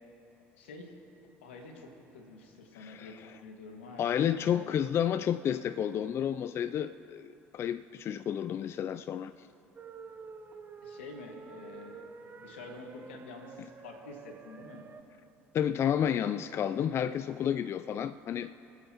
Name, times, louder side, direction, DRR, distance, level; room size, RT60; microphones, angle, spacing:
voice 1, 0.5-0.9 1.4-4.8 10.8-12.1 12.4-14.9 16.0-16.4, left 3 dB, 90° left, 2 dB, 1.7 m, -48 dB
voice 2, 2.8-3.3 4.0-9.5 15.5-18.5, left 9 dB, 45° left, 12 dB, 0.3 m, -31 dB
sound 1, 9.8-15.0, right 5 dB, 35° right, 0.9 m, -49 dB
24.5 x 8.3 x 2.9 m, 2.9 s
hypercardioid pair, 70°, 6 cm